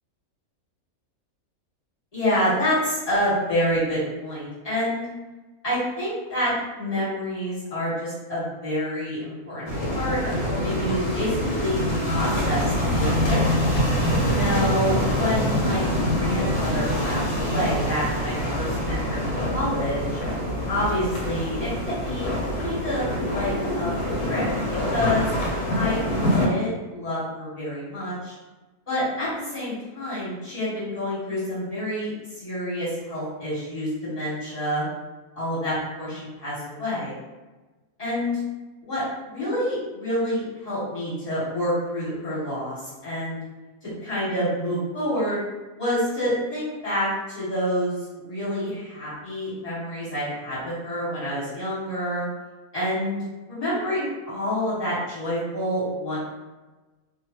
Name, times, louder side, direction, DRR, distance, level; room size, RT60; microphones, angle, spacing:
voice 1, 2.1-5.0 5.6-13.6 14.3-19.2 19.5-20.2 20.7-22.3 22.6-25.3 25.7-26.0 26.3-28.3 28.9-34.8 35.3-37.1 38.0-38.4 38.8-39.0 39.3-43.4 43.8-45.4 45.8-52.3 52.7-53.2 53.5-56.2, equal, 25° left, -11 dB, 1.5 m, -28 dB
sound 1, 9.7-26.5, equal, 85° left, 1.2 m, -25 dB
2.8 x 2.2 x 2.8 m, 1.2 s
omnidirectional pair, 1.6 m